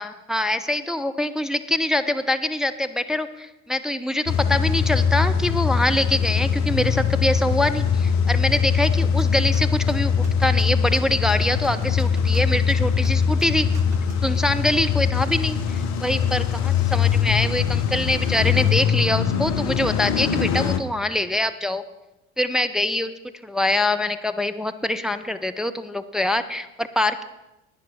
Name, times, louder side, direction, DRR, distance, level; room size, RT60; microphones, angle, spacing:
voice 1, 0.0-13.7 14.2-21.8 22.4-23.1 23.4-27.2, left 1 dB, ahead, 10 dB, 0.6 m, -24 dB
Car / Engine starting / Idling, 4.3-20.8, left 6 dB, 50° left, 1.0 m, -22 dB
sound 1, 8.8-14.3, right 6 dB, 90° right, 0.9 m, -42 dB
10.5 x 9.8 x 5.9 m, 0.96 s
figure-of-eight pair, 55°, 34 cm